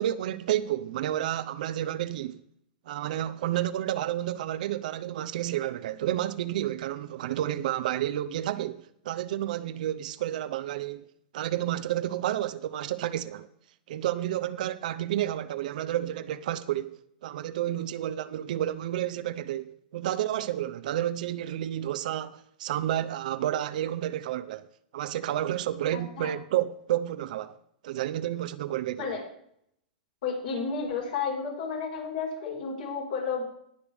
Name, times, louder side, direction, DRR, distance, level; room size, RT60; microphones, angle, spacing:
voice 1, 0.0-2.4 2.9-11.1 11.3-13.5 13.9-24.7 24.9-27.6 27.8-29.2, right 12 dB, 65° right, 0.7 m, -30 dB
voice 2, 25.9-26.3 29.0-29.2 30.2-33.4, left 5 dB, 70° left, 5.0 m, -32 dB
19.0 x 6.7 x 3.5 m
hypercardioid pair, 145°, 5 cm